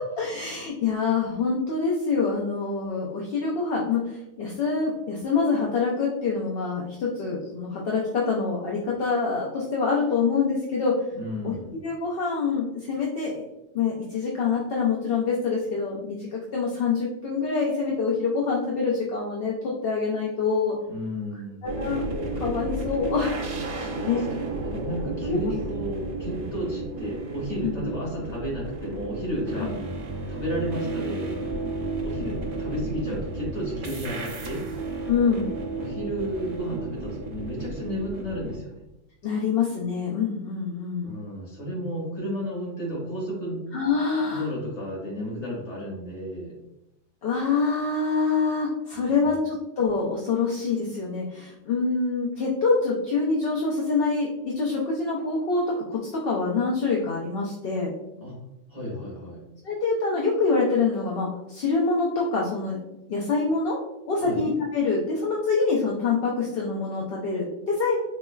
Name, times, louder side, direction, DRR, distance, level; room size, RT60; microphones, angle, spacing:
voice 1, 0.2-11.0 11.4-11.5 11.8-13.4 13.7-20.7 21.6-22.0 22.4-23.3 24.1-24.2 25.3-25.4 27.6-27.8 29.6-29.7 35.1-35.5 39.2-41.1 43.7-44.5 47.2-57.9 59.6-62.8 63.1-63.8 64.1-68.0, left 4 dB, 60° left, -3 dB, 0.7 m, -25 dB
voice 2, 11.1-11.8 20.9-21.8 23.7-29.7 30.3-31.3 32.0-34.6 35.8-38.8 41.0-43.6 44.2-46.5 48.9-49.3 58.2-58.4 58.7-59.4 64.2-64.4, equal, 30° left, -5 dB, 1.6 m, -32 dB
sound 1, 21.6-38.6, right 2 dB, 55° right, 0.7 m, -33 dB
4.0 x 3.1 x 2.3 m, 0.92 s
omnidirectional pair, 1.3 m